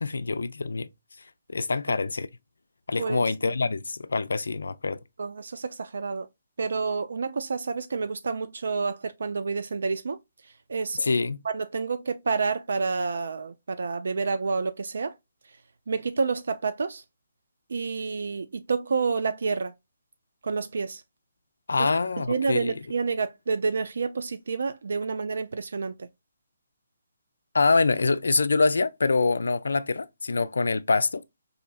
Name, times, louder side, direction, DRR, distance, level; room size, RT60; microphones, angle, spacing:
voice 1, 0.0-0.9 1.5-2.3 2.9-5.0 11.0-11.4 21.7-22.7 27.5-31.2, left 3 dB, 80° left, 0.3 m, -25 dB
voice 2, 5.2-6.3 6.6-10.2 10.7-11.1 11.4-15.1 15.9-17.0 17.7-19.7 20.4-21.0 21.8-21.9 22.2-26.1, right 4 dB, 70° right, 0.3 m, -29 dB
4.1 x 2.7 x 2.3 m
hypercardioid pair, 150°, 0 cm